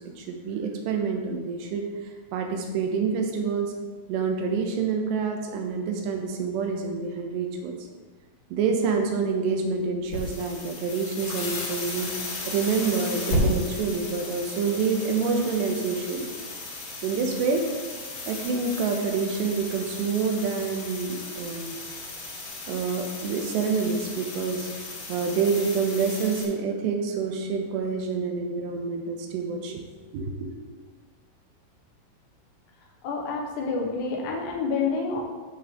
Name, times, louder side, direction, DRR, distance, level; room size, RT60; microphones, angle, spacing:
voice 1, 0.2-1.8 2.3-3.7 4.1-7.8 8.5-16.3 17.0-17.6 18.3-21.8 22.7-24.7 25.1-29.8 30.1-30.5, right 5 dB, 80° right, 3 dB, 3.0 m, -27 dB
sound 1, 10.0-26.4, left 2 dB, 90° left, 5.4 m, -34 dB
voice 2, 33.0-35.2, left 4 dB, 75° left, 0 dB, 3.2 m, -28 dB
12.0 x 6.2 x 3.7 m, 1.3 s
omnidirectional pair, 5.0 m